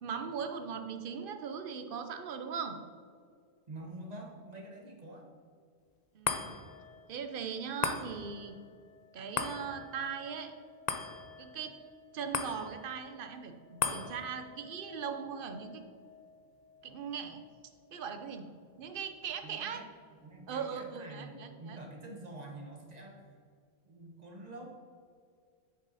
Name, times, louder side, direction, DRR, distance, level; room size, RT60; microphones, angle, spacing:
voice 1, 0.0-2.8 6.1-6.6 7.1-8.6 9.1-10.5 11.4-11.7 12.1-15.8 16.8-17.4 17.9-18.5 18.8-19.8 20.5-21.8, right 6 dB, 60° right, 6 dB, 0.9 m, -39 dB
voice 2, 3.7-5.3 13.8-14.0 19.4-19.9 20.2-23.4 23.8-24.7, right 1 dB, 40° right, 0 dB, 1.5 m, -47 dB
sound 1, 6.2-18.8 19.3-19.4, left 5 dB, 45° left, 0.7 m, -41 dB
8.2 x 7.0 x 4.1 m, 2.2 s
omnidirectional pair, 1.1 m